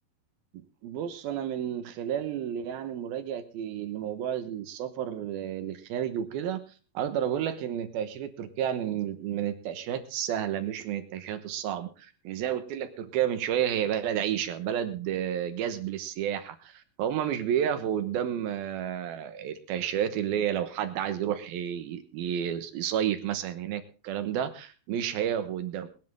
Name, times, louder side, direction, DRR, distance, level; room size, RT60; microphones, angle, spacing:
voice 1, 0.5-6.6 6.9-25.9, right 10 dB, 75° right, 10 dB, 2.9 m, -31 dB
20.5 x 10.5 x 3.6 m, 0.35 s
omnidirectional pair, 4.4 m